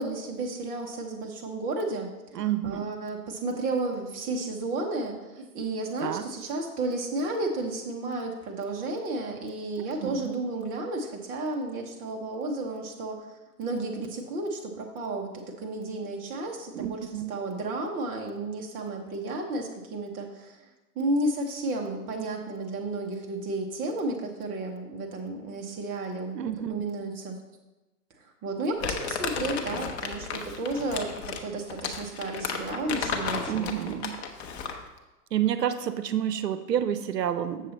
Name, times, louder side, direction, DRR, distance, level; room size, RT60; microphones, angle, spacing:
voice 1, 0.0-13.3 13.6-20.6 20.9-26.4 26.7-27.4 28.4-33.7, right 2 dB, 20° right, 1 dB, 0.8 m, -32 dB
voice 2, 2.3-2.9 6.0-6.3 9.8-10.3 16.7-17.3 26.3-26.8 33.5-34.2 35.3-37.7, right 10 dB, 80° right, 11 dB, 0.8 m, -29 dB
Crumpling crinkling, 28.8-34.9, left 6 dB, 40° left, 0.9 m, -33 dB
7.4 x 6.8 x 4.1 m, 1.1 s
hypercardioid pair, 140°, 48 cm